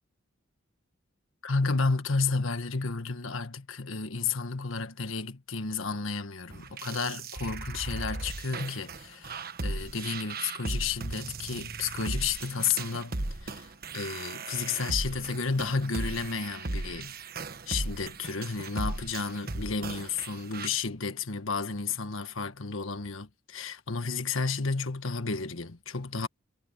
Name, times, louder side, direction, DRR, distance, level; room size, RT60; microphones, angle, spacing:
voice 1, 1.4-17.2 17.7-26.3, left 4 dB, 75° left, 1.6 m, -32 dB
sound 1, 6.5-20.7, right 2 dB, 45° right, 1.3 m, -37 dB
head